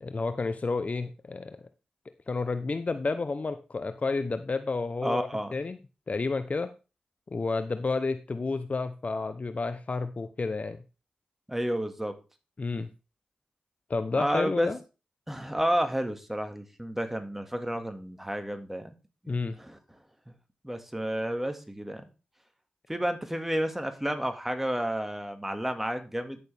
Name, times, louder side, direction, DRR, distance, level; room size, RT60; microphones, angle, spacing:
voice 1, 0.0-1.6 2.3-5.8 6.1-6.7 7.3-10.8 12.6-12.9 13.9-14.8 19.3-19.6, left 3 dB, 50° left, 10 dB, 0.8 m, -30 dB
voice 2, 5.0-5.5 11.5-12.2 14.1-14.7 15.3-18.9 19.2-19.3 19.6-19.8 20.6-22.0 22.9-26.4, equal, 10° right, 6 dB, 2.0 m, -31 dB
10.5 x 6.5 x 3.5 m, 0.31 s
cardioid pair, 40°, 3 cm